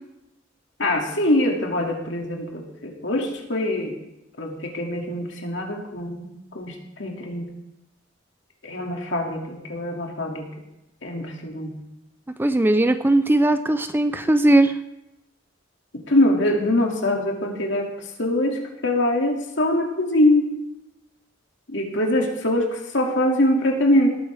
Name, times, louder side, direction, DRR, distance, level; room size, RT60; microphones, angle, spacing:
voice 1, 0.8-3.9 4.4-7.5 8.6-10.5 11.0-11.7 16.1-17.9 18.2-20.5 21.7-24.1, left 1 dB, 70° left, 1 dB, 2.4 m, -23 dB
voice 2, 12.4-14.7, right 1 dB, 10° right, 10 dB, 0.4 m, -18 dB
19.0 x 9.0 x 3.5 m, 0.91 s
head